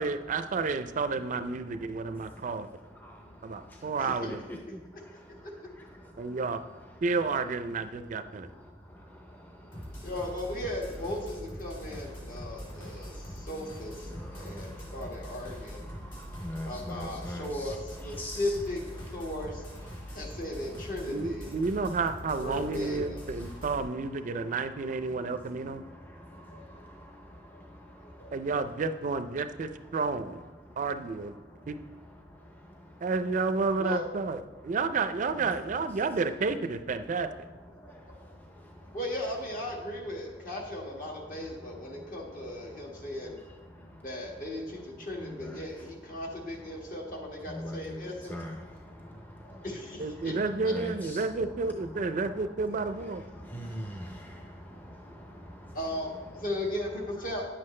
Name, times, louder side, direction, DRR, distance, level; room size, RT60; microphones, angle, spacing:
voice 1, 0.0-2.7 3.4-4.4 6.2-6.6 7.0-8.5 21.1-25.8 28.3-30.4 30.8-31.3 31.7-31.8 33.0-37.3 50.0-53.2, right 4 dB, 45° right, 10 dB, 0.4 m, -31 dB
voice 2, 3.0-3.9 4.3-4.8 5.2-5.3 6.1-6.3 8.9-10.1 12.3-13.5 14.1-15.1 15.6-17.7 18.2-18.4 19.9-20.2 25.9-28.3 30.7-30.8 31.5-31.7 32.3-33.0 37.8-39.0 43.8-44.0 45.4-45.6 47.5-49.7 50.2-50.3 50.6-51.2 53.3-55.8, equal, 10° left, 1 dB, 0.5 m, -44 dB
voice 3, 4.0-4.3 5.1-5.2 10.0-15.8 16.7-21.5 22.4-23.2 26.5-26.9 27.5-27.6 28.0-28.3 33.8-34.0 37.8-37.9 38.9-43.4 44.0-48.4 48.7-48.8 49.4-50.4 50.6-50.7 53.6-54.0 55.7-57.5, left 1 dB, 50° left, -1 dB, 1.6 m, -37 dB
sound 1, 9.7-23.8, equal, 30° left, 2.6 m, -43 dB
10.0 x 7.6 x 3.2 m, 1.2 s
head